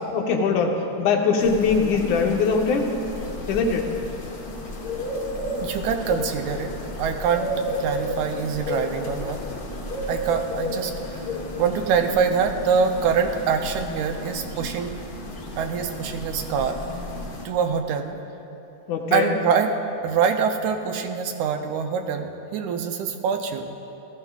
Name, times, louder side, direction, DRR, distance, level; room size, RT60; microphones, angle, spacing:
voice 1, 0.1-2.9 3.5-3.9 18.9-19.3, left 5 dB, 75° left, 2 dB, 2.2 m, -22 dB
sound 1, 1.4-17.4, left 1 dB, 55° left, 1.1 m, -32 dB
voice 2, 5.6-7.5 7.8-9.4 10.1-11.3 11.6-15.0 15.6-16.8 17.5-18.2 19.1-19.7 20.0-23.7, right 6 dB, 80° right, 5 dB, 1.9 m, -24 dB
18.0 x 13.5 x 2.4 m, 2.9 s
omnidirectional pair, 3.6 m